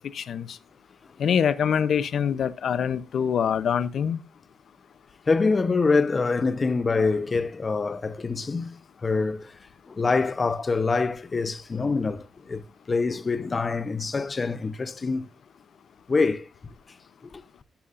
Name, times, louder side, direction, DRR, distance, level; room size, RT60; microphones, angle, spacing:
voice 1, 0.1-0.6 1.2-4.2, left 7 dB, 70° left, 0.6 m, -24 dB
voice 2, 5.3-9.5 9.9-15.3 16.1-16.5 17.3-17.4, left 4 dB, 35° left, 0.7 m, -25 dB
12.5 x 7.0 x 2.5 m
cardioid pair, 80°, 0 cm